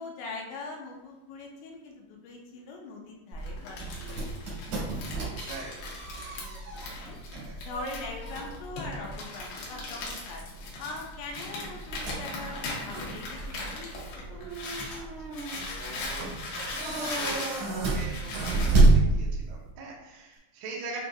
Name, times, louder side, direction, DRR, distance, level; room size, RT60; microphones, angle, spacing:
voice 1, 0.0-4.2 4.7-5.6 6.3-7.2 7.7-10.4 10.8-14.4, left 3 dB, 90° left, 0 dB, 2.9 m, -42 dB
sound 1, 3.3-19.7, right 2 dB, 60° right, 1.7 m, -30 dB
Crumpling crinkling, 3.4-15.0 15.3-18.8, left 2 dB, 70° left, 2.4 m, -39 dB
voice 2, 5.4-5.9 14.9-21.1, right 3 dB, 80° right, -4 dB, 2.1 m, -43 dB
7.6 x 2.6 x 2.3 m, 1.0 s
omnidirectional pair, 5.1 m